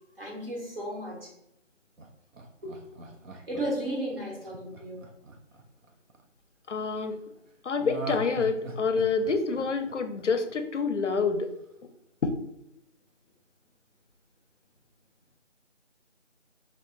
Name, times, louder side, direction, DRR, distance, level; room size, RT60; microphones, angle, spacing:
voice 1, 0.0-1.3 2.6-2.8 3.3-5.0, right 1 dB, 50° right, -3 dB, 1.0 m, -34 dB
Laughter, 2.0-6.2 7.8-10.8 11.1-11.2, right 3 dB, 90° right, 0.6 m, -41 dB
voice 2, 6.7-7.2 7.6-11.5 12.2-12.4, left 4 dB, 70° left, 8 dB, 0.5 m, -27 dB
2.9 x 2.1 x 3.6 m, 0.82 s
figure-of-eight pair, 175°, 37 cm